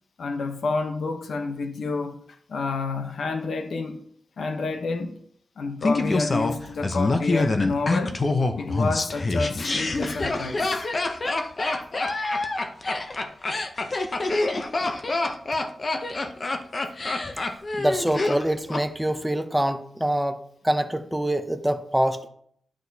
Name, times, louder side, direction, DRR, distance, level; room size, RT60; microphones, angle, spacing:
voice 1, 0.2-2.2 2.5-4.0 4.4-5.1 5.6-8.2 8.5-10.8, left 3 dB, 75° left, 0.9 m, -29 dB
Laughter, 5.8-18.8 19.1-19.2, left 2 dB, 35° left, 0.6 m, -26 dB
voice 2, 17.8-20.4 20.6-22.3, right 1 dB, 5° right, 0.6 m, -25 dB
11.0 x 6.1 x 2.8 m
wide cardioid pair, 155°, 0 cm